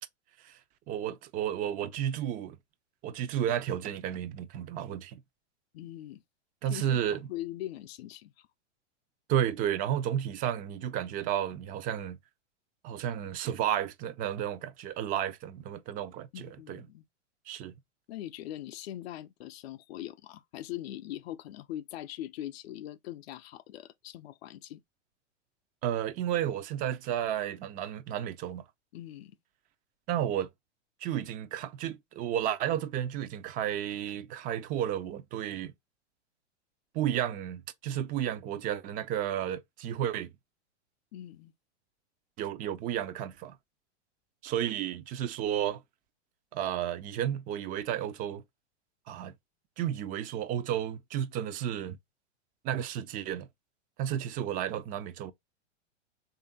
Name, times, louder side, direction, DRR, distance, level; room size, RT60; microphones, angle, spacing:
voice 1, 0.9-2.6 3.0-5.2 6.6-7.2 9.3-12.2 12.8-16.8 17.5-17.8 25.8-28.6 30.1-30.5 31.0-35.7 36.9-40.3 42.4-43.6 44.4-45.8 46.5-48.4 49.1-49.3 49.8-52.0 52.6-53.5 54.0-55.3, right 10 dB, 25° right, 0.4 m, -32 dB
voice 2, 5.7-6.2 6.7-8.5 16.3-17.0 18.1-24.8 28.9-29.3 41.1-41.5 54.1-54.2, left 13 dB, 60° left, 0.5 m, -41 dB
3.4 x 2.6 x 3.8 m
hypercardioid pair, 120°, 36 cm